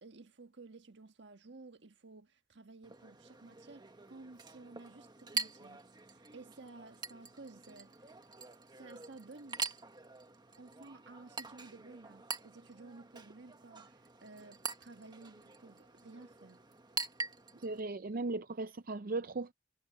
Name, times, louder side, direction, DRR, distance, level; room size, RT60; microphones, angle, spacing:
voice 1, 0.0-5.8 6.1-7.9 8.8-9.6 10.6-16.6, right 3 dB, 65° right, 1.4 m, -54 dB
Chink clink, 2.8-17.8, right 4 dB, 25° right, 1.4 m, -45 dB
voice 2, 17.6-19.5, right 3 dB, 50° right, 0.5 m, -37 dB
head